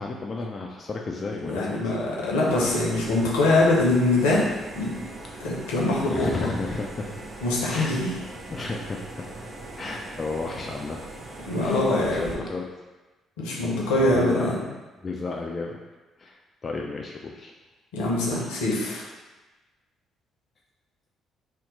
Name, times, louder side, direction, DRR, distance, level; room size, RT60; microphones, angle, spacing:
voice 1, 0.0-2.0 6.0-7.2 7.7-7.9 8.5-11.0 11.6-12.7 14.0-15.8 16.2-17.5, left 3 dB, 35° left, 0 dB, 0.3 m, -33 dB
voice 2, 1.4-4.4 4.8-4.9 5.4-6.3 7.4-8.1 11.4-12.3 13.4-14.5 17.9-19.0, left 2 dB, 75° left, -4 dB, 0.6 m, -23 dB
sound 1, 2.5-12.3, right 2 dB, 45° right, 0.7 m, -41 dB
2.8 x 2.1 x 3.9 m, 1.2 s
figure-of-eight pair, 45°, 0 cm